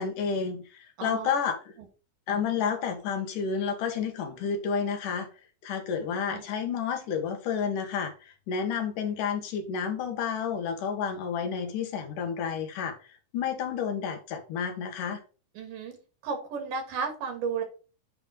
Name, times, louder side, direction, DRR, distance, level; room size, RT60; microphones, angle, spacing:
voice 1, 0.0-1.6 2.3-5.3 5.6-15.2, left 6 dB, 85° left, 2.9 m, -30 dB
voice 2, 1.0-1.3 6.3-6.4 15.6-16.0 16.2-17.6, right 5 dB, 90° right, 3.6 m, -33 dB
9.2 x 3.5 x 5.1 m
omnidirectional pair, 3.7 m